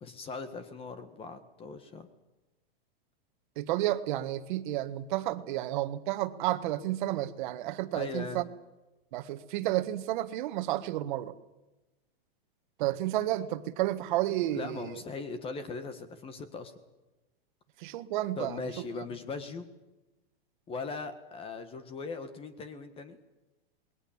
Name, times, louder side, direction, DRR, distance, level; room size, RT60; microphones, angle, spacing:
voice 1, 0.0-2.1 7.9-8.4 14.5-16.7 18.4-19.7 20.7-23.2, left 4 dB, 20° left, 11 dB, 1.6 m, -39 dB
voice 2, 3.6-8.5 9.1-11.3 12.8-15.0 17.8-18.7, right 14 dB, 50° right, 11 dB, 1.8 m, -31 dB
27.5 x 21.0 x 7.4 m, 1.1 s
supercardioid pair, 155°, 31 cm